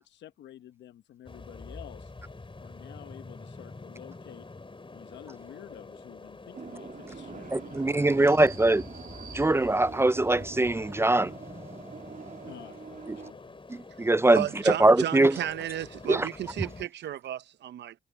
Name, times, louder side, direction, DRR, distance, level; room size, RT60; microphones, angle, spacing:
voice 1, 0.0-2.1 2.6-4.5 4.9-8.2 12.5-13.6, left 12 dB, 85° left, 1.2 m, -50 dB
sound 1, 1.3-16.9, left 3 dB, 30° left, 3.9 m, -46 dB
sound 2, 6.5-13.3, right 5 dB, 45° right, 2.8 m, -44 dB
voice 2, 7.5-8.9 9.3-11.3 13.1-13.2 13.7-15.4 16.1-16.3, right 2 dB, 15° right, 0.4 m, -22 dB
voice 3, 14.3-17.9, right 12 dB, 80° right, 0.9 m, -33 dB
supercardioid pair, 55°, 18 cm